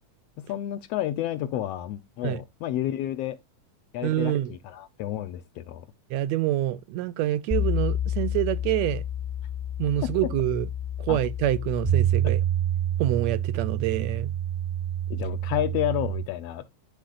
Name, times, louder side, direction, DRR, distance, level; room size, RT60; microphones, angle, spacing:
voice 1, 0.4-3.4 3.9-5.8 10.0-10.3 11.1-11.2 15.1-16.6, left 12 dB, 75° left, 1.5 m, -30 dB
voice 2, 4.0-4.5 6.1-9.0 9.8-10.7 11.0-12.4 13.0-14.3, right 13 dB, 80° right, 1.7 m, -26 dB
sound 1, 7.5-16.2, right 3 dB, 20° right, 0.6 m, -28 dB
11.5 x 4.9 x 2.4 m
omnidirectional pair, 3.3 m